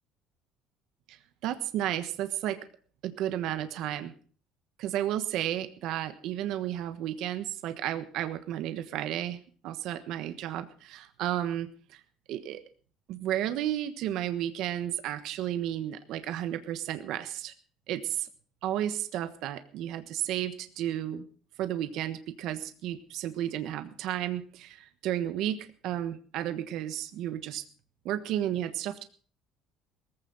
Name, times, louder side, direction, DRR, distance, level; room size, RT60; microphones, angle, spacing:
voice 1, 1.4-2.6 3.0-4.1 4.8-12.0 12.3-12.6 13.1-17.5 17.9-18.3 18.6-21.2 21.6-27.6 28.0-29.0, right 12 dB, 55° right, 10 dB, 1.2 m, -33 dB
18.0 x 15.0 x 4.0 m, 0.43 s
cardioid pair, 175°, 0 cm